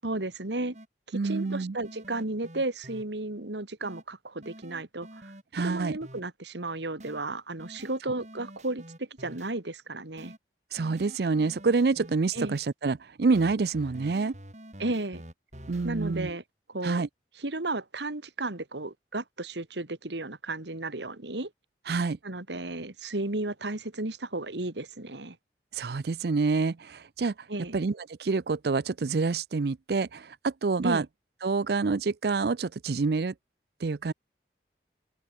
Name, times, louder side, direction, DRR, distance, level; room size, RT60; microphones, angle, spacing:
voice 1, 0.0-0.8 1.1-10.3 12.3-12.6 14.8-15.2 15.8-16.4 16.7-17.0 17.4-21.5 22.2-25.4 27.5-27.8 30.8-31.0, right 2 dB, 80° right, 2.1 m, -34 dB
sound 1, 0.7-0.9 1.2-3.0 3.8-4.0 4.4-6.2 7.0-7.2 7.6-9.5 10.2-10.4 10.8-12.7 13.3-16.3, equal, 40° right, 8.0 m, -47 dB
voice 2, 1.1-1.8 5.5-6.0 10.7-14.4 15.7-16.4 16.8-17.1 21.9-22.2 25.7-27.3 27.7-31.1 31.4-33.3 33.8-34.1, right 4 dB, 60° right, 0.5 m, -27 dB
open air
head